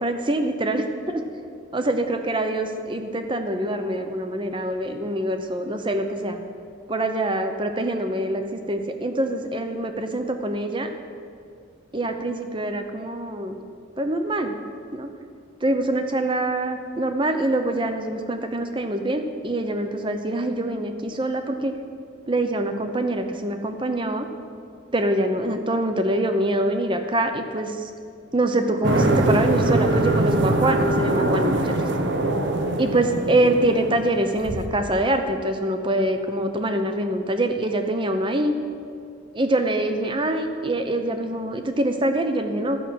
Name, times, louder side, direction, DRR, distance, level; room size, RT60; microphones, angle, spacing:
voice 1, 0.0-1.2 1.7-6.4 6.9-10.9 11.9-13.6 14.0-14.6 14.9-15.1 15.6-21.7 22.3-24.3 24.9-27.9 28.3-31.7 32.8-38.5 39.3-42.8, right 1 dB, 25° right, 6 dB, 0.8 m, -24 dB
Plane on descent passing over, 28.8-34.6, right 1 dB, 60° right, 1.0 m, -23 dB
12.5 x 6.1 x 8.5 m, 2.3 s
head